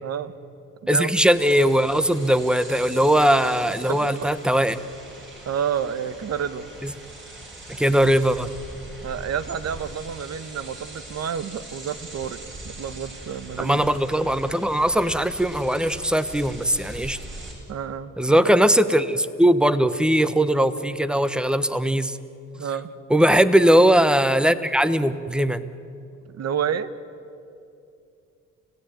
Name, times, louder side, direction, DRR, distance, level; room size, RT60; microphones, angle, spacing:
voice 1, 0.0-0.3 0.8-1.1 3.9-4.3 5.4-6.7 9.0-12.4 12.6-13.8 17.7-18.3 22.5-22.9 26.3-26.9, right 8 dB, 55° right, 13 dB, 1.3 m, -29 dB
voice 2, 0.9-4.8 6.8-6.9 7.7-8.5 13.6-17.2 18.2-22.2 23.1-25.7, equal, 5° right, 13 dB, 1.1 m, -20 dB
sound 1, 1.2-17.5, right 2 dB, 40° right, 7.4 m, -41 dB
29.5 x 16.5 x 9.2 m, 2.6 s
cardioid pair, 90°, 30 cm